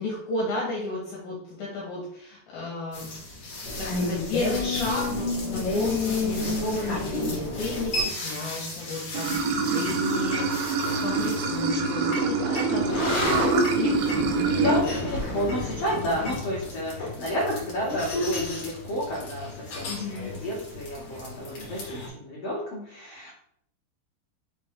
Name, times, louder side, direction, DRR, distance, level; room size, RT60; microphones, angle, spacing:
voice 1, 0.0-3.1 3.8-13.4 13.7-14.2 14.6-14.8 19.9-20.3, left 2 dB, 65° left, -4 dB, 2.7 m, -33 dB
sound 1, 2.9-22.1, left 2 dB, 45° left, 2.2 m, -32 dB
Water / Sink (filling or washing), 9.1-14.8, right 4 dB, 80° right, 2.4 m, -25 dB
voice 2, 14.5-23.3, equal, 90° left, -5 dB, 1.3 m, -31 dB
6.2 x 4.2 x 3.6 m, 0.71 s
omnidirectional pair, 5.0 m